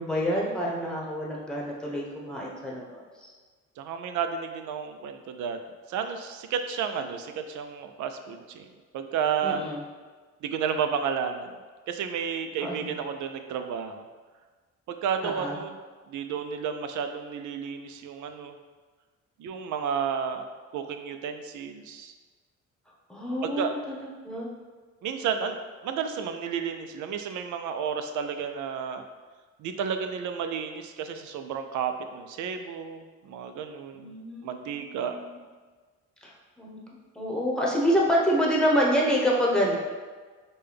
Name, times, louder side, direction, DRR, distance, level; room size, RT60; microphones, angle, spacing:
voice 1, 0.0-3.3 9.4-9.8 12.6-12.9 15.2-15.6 23.1-23.9 24.2-24.5 33.9-35.4 36.2-36.8 37.1-39.8, equal, 5° left, -3 dB, 0.9 m, -27 dB
voice 2, 3.8-5.6 5.9-8.7 8.9-9.6 10.4-11.6 11.9-14.0 14.9-15.7 16.1-18.5 19.4-20.4 20.7-22.1 23.4-23.8 25.0-29.0 29.6-34.1 34.4-35.2, right 7 dB, 75° right, 7 dB, 0.5 m, -32 dB
5.3 x 2.2 x 3.4 m, 1.4 s
cardioid pair, 90°, 30 cm